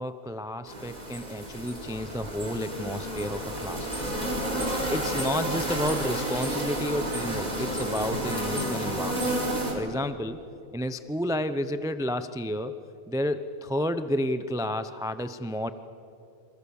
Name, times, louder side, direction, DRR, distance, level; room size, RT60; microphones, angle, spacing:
voice 1, 0.0-3.9 4.9-9.3 9.7-10.5 10.7-12.8 13.1-15.7, equal, 5° right, 10 dB, 0.6 m, -31 dB
sound 1, 0.7-9.7, right 1 dB, 30° right, 4.9 m, -31 dB
29.5 x 26.5 x 7.2 m, 2.7 s
omnidirectional pair, 1.4 m